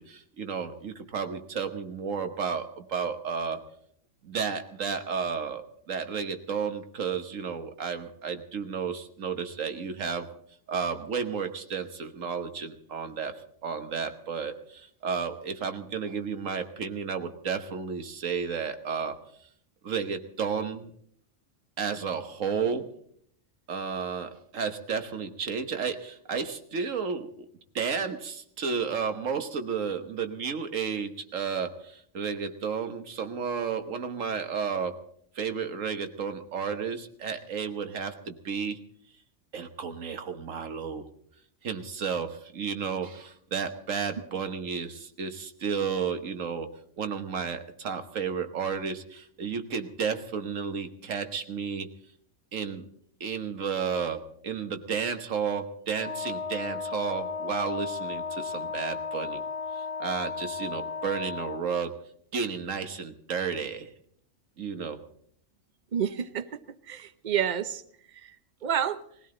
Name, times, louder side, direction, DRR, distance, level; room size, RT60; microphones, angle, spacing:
voice 1, 0.0-3.6 4.2-10.3 10.7-19.2 19.8-20.9 21.8-22.9 23.7-27.3 27.8-35.0 35.3-38.8 39.5-41.0 41.6-46.7 47.0-51.9 52.5-52.8 53.2-59.4 59.7-62.0 62.3-63.9 64.6-65.0, right 6 dB, 80° right, 8 dB, 1.6 m, -32 dB
Wind instrument woodwind instrument, 56.0-61.7, left 5 dB, 30° left, 1.2 m, -35 dB
voice 2, 65.9-66.6 66.9-67.8 68.1-68.4 68.6-69.0, right 8 dB, 40° right, 13 dB, 0.8 m, -29 dB
21.0 x 16.5 x 3.8 m, 0.64 s
omnidirectional pair, 1.3 m